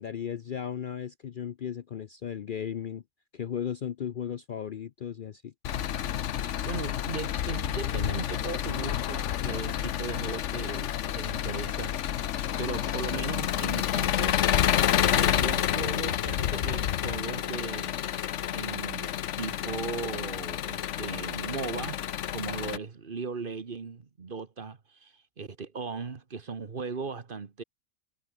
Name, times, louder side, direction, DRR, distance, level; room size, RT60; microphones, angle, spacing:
voice 1, 0.0-3.0 3.3-5.5, left 8 dB, 55° left, 0.6 m, -35 dB
Engine, 5.6-22.8, left 10 dB, 70° left, 1.1 m, -29 dB
voice 2, 6.7-12.2 12.6-14.4 15.0-17.9 18.5-22.0 22.3-27.6, right 4 dB, 45° right, 1.4 m, -37 dB
omnidirectional pair, 1.3 m